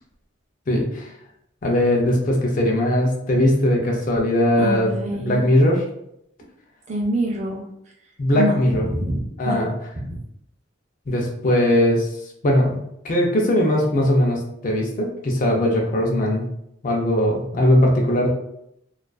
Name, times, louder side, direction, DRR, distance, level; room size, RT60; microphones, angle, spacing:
voice 1, 0.7-1.1 1.6-4.9 5.2-5.8 8.2-8.9 9.4-9.7 11.1-12.1 12.4-16.5 16.8-18.3, left 1 dB, 40° left, 0 dB, 0.4 m, -19 dB
voice 2, 4.6-5.4 6.9-7.6 8.3-8.6 8.8-9.6 10.0-10.2, equal, 35° right, -1 dB, 0.5 m, -25 dB
2.3 x 2.3 x 2.3 m, 0.76 s
head